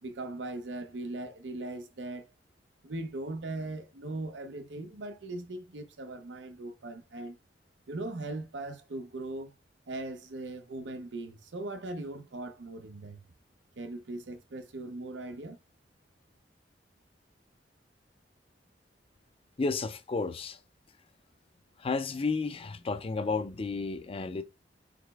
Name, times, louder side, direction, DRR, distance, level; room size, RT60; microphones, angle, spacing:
voice 1, 0.0-2.3 2.8-7.4 7.9-9.5 9.9-13.2 13.8-15.6, right 2 dB, 85° right, 0.7 m, -39 dB
voice 2, 19.6-20.6 21.8-24.4, left 4 dB, 30° left, 0.4 m, -32 dB
4.9 x 4.0 x 2.3 m
head